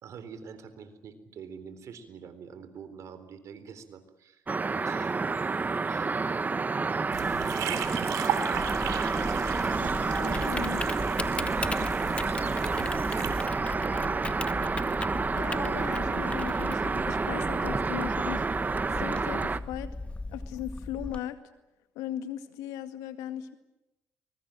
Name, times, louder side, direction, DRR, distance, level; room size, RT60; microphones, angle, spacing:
voice 1, 0.0-4.5 4.9-5.2 5.8-6.1 7.4-8.2 11.3-12.2 12.5-14.5, right 6 dB, 65° right, 12 dB, 3.9 m, -46 dB
sound 1, 4.5-19.6, right 4 dB, 30° right, 1.3 m, -29 dB
sound 2, 7.1-13.5, right 11 dB, 80° right, 3.4 m, -37 dB
Typing, 8.5-21.2, left 2 dB, 20° left, 1.8 m, -37 dB
voice 2, 9.8-10.8 11.8-11.9 15.3-18.7 19.0-19.9 20.3-21.4 22.0-23.5, left 11 dB, 85° left, 9 dB, 2.1 m, -38 dB
24.0 x 22.5 x 9.0 m, 0.95 s
supercardioid pair, 65°, 6 cm